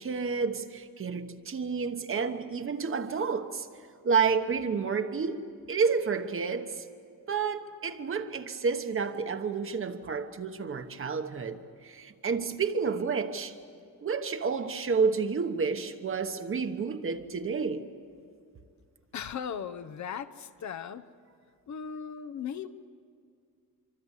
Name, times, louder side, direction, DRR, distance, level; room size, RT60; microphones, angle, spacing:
voice 1, 0.0-3.7 4.0-6.8 7.3-13.5 14.0-17.9, right 5 dB, 40° right, 1.2 m, -30 dB
voice 2, 19.1-21.1 21.7-22.7, left 7 dB, 55° left, 0.9 m, -37 dB
25.5 x 25.0 x 8.3 m
wide cardioid pair, 160°, 34 cm